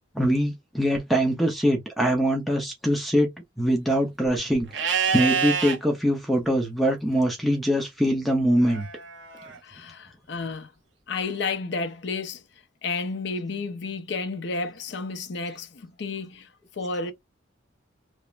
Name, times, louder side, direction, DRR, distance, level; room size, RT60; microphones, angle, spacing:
voice 1, 0.1-3.3 3.6-8.9, equal, ahead, 0.5 m, -23 dB
Livestock farm animals working animals, 4.7-5.8 8.6-9.6, right 7 dB, 70° right, 0.8 m, -26 dB
voice 2, 9.6-10.7 11.1-12.4 12.8-16.5 16.8-17.1, left 4 dB, 60° left, 0.5 m, -31 dB
3.1 x 2.0 x 2.3 m
head